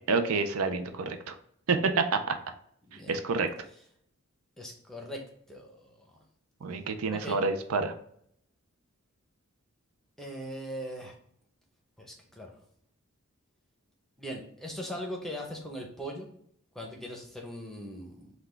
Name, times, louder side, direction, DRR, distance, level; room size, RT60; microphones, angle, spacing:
voice 1, 0.1-1.3 1.7-2.4 3.1-3.5 6.6-7.9, right 4 dB, 80° right, 8 dB, 0.5 m, -28 dB
voice 2, 2.8-3.1 4.6-5.2 5.5-6.2 7.1-7.4 10.2-11.1 12.0-12.5 14.2-16.3 16.7-18.3, equal, ahead, 0 dB, 0.7 m, -40 dB
5.8 x 2.3 x 3.2 m, 0.68 s
head